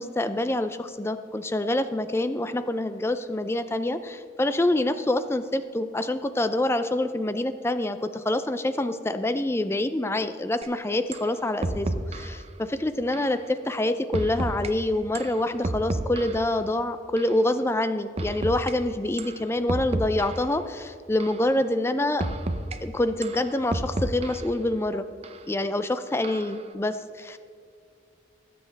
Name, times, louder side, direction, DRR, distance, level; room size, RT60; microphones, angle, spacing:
voice 1, 0.0-22.3 22.8-25.1 25.5-27.4, left 1 dB, 15° left, 11 dB, 0.4 m, -26 dB
sound 1, 10.6-10.7 11.1-11.3 11.6-12.4 13.1-13.4 14.1-14.7 15.1-16.5 17.2-17.4 18.2-18.7 19.2-19.4 19.7-20.5 21.2-21.5 22.2-22.8 23.2-24.5 25.2-25.4 26.2-26.6, right 2 dB, 35° right, 0.6 m, -31 dB
20.0 x 7.8 x 3.4 m, 2.4 s
head